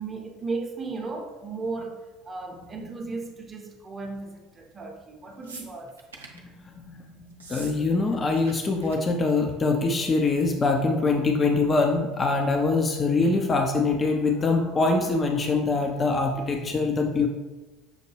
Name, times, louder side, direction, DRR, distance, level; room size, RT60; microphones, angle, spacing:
voice 1, 0.0-5.9, right 3 dB, 25° right, 2 dB, 0.7 m, -35 dB
sound 1, 5.4-6.4 7.3-7.8 8.0-8.5 8.8-9.0 9.3-9.6 10.5-10.6, right 3 dB, 80° right, 0.5 m, -44 dB
voice 2, 6.7-7.0 7.5-17.3, left 3 dB, 30° left, 2 dB, 0.5 m, -23 dB
6.2 x 2.1 x 3.2 m, 1.2 s
figure-of-eight pair, 65°, 0 cm